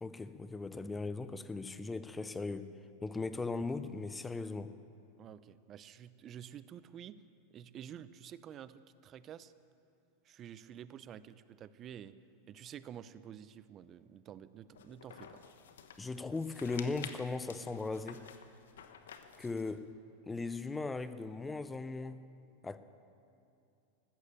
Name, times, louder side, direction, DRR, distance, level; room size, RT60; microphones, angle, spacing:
voice 1, 0.0-2.7 3.0-4.8 16.0-18.3 19.4-19.9 20.2-22.2 22.6-22.8, left 3 dB, 15° left, 0.7 m, -38 dB
voice 2, 5.2-7.2 7.5-9.5 10.2-12.1 12.5-15.4, right 9 dB, 35° right, 0.6 m, -50 dB
sound 1, 14.7-19.8, left 7 dB, 80° left, 1.0 m, -51 dB
15.5 x 13.0 x 7.1 m
hypercardioid pair, 105°, 0 cm